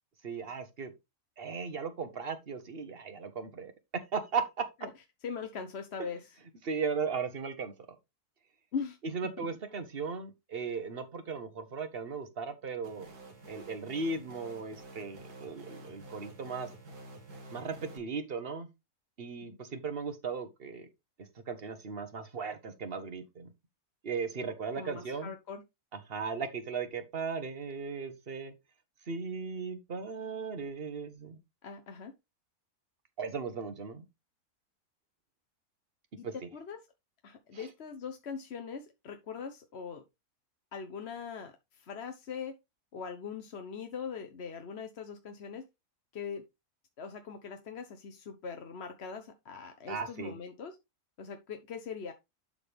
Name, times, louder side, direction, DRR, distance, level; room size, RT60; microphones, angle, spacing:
voice 1, 0.2-0.9 1.4-4.7 6.6-7.7 9.1-13.1 13.5-16.7 17.5-18.7 19.2-20.9 21.5-23.5 24.0-25.3 26.1-28.5 29.1-31.4 33.2-34.0 36.2-36.3 37.5-37.7 49.9-50.3, right 5 dB, 40° right, 1.3 m, -37 dB
voice 2, 5.2-6.4 8.7-9.0 9.4-9.5 19.5-19.6 24.8-25.6 31.6-32.1 36.2-36.8 37.2-40.0 40.7-42.5 42.9-45.6 46.1-46.4 47.0-50.8 51.2-52.1, left 6 dB, 50° left, 1.0 m, -41 dB
sound 1, 12.8-18.0, right 2 dB, 85° right, 2.2 m, -49 dB
12.0 x 4.0 x 3.4 m
omnidirectional pair, 1.6 m